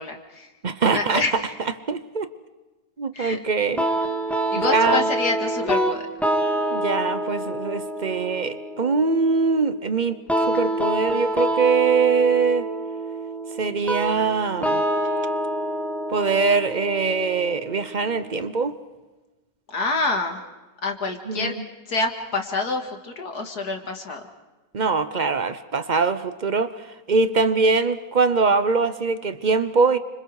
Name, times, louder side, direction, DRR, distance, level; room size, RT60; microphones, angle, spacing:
voice 1, 0.0-0.5 0.9-1.5 3.1-3.4 4.5-6.0 19.7-20.4 20.8-21.5 21.9-24.2, left 3 dB, 65° left, 4 dB, 2.4 m, -27 dB
voice 2, 0.6-1.2 1.9-2.3 3.0-3.9 4.6-5.1 6.7-10.2 10.5-12.7 13.6-14.8 16.1-18.8 21.3-21.5 24.7-26.7 27.1-30.0, right 4 dB, 40° right, 12 dB, 0.6 m, -22 dB
sound 1, 3.8-18.7, right 1 dB, ahead, 1.8 m, -27 dB
30.0 x 26.0 x 4.8 m, 1.2 s
omnidirectional pair, 1.9 m